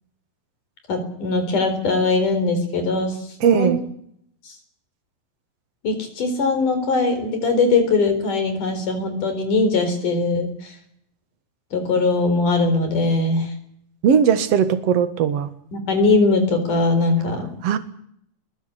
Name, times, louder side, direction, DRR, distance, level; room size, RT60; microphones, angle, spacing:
voice 1, 0.9-3.2 3.4-3.7 4.5-4.6 5.8-10.8 11.7-13.5 15.7-17.5, left 3 dB, 60° left, 7 dB, 5.6 m, -20 dB
voice 2, 3.4-3.8 14.0-15.5 17.6-17.8, right 7 dB, 50° right, 10 dB, 2.4 m, -18 dB
22.0 x 20.5 x 8.1 m, 0.70 s
omnidirectional pair, 4.1 m